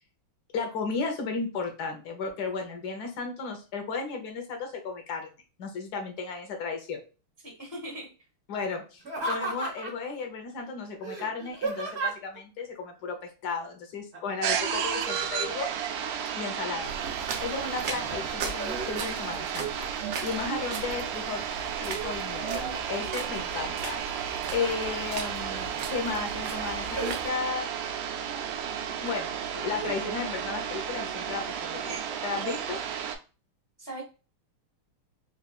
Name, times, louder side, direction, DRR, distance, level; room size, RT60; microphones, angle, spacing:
voice 1, 0.5-5.3 5.6-7.0 8.5-15.7 16.4-16.9 17.4-21.4 21.8-27.7 29.0-32.8, left 5 dB, 60° left, 3 dB, 1.1 m, -34 dB
voice 2, 7.4-8.1 33.8-34.0, right 1 dB, 30° left, -2 dB, 0.5 m, -39 dB
Laughter, 9.0-10.1 11.0-12.4 14.1-14.6 14.9-16.5 17.1-17.7 18.2-19.4 19.8-20.4 20.9-21.7 22.1-23.0 24.1-25.0 25.5-25.6 26.1-26.4 26.9-27.2, right 2 dB, 55° right, 0.7 m, -35 dB
sound 1, 14.4-33.2, right 8 dB, 90° right, 1.5 m, -33 dB
sound 2, 16.8-27.3, right 5 dB, 70° right, 1.1 m, -39 dB
4.1 x 2.4 x 2.3 m, 0.34 s
omnidirectional pair, 2.4 m